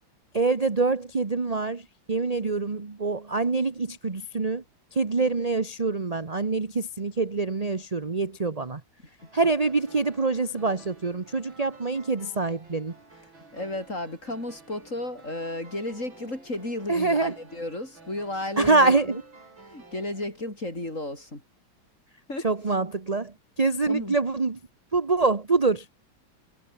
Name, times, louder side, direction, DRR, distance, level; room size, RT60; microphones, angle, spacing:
voice 1, 0.3-4.6 4.9-8.8 9.3-12.9 16.9-17.3 18.6-19.2 22.4-24.6 24.9-25.9, right 3 dB, 25° right, 1.1 m, -25 dB
sound 1, 9.2-20.3, right 3 dB, 70° right, 6.2 m, -52 dB
voice 2, 13.5-19.2 19.7-21.4 22.3-22.5 23.8-24.2, left 1 dB, 35° left, 8.1 m, -33 dB
omnidirectional pair, 2.2 m